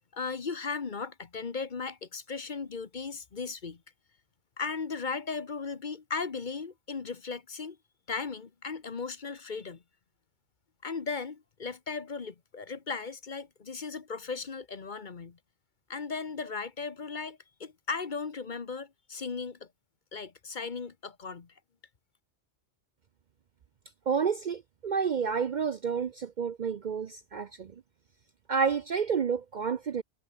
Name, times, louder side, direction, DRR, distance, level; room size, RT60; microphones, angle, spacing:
voice 1, 0.1-3.8 4.6-7.8 8.1-9.8 10.8-15.4 15.9-19.7 20.1-21.5, left 4 dB, 45° left, 1.2 m, -37 dB
voice 2, 24.1-27.7 28.5-30.0, right 6 dB, 50° right, 0.6 m, -30 dB
omnidirectional pair, 1.2 m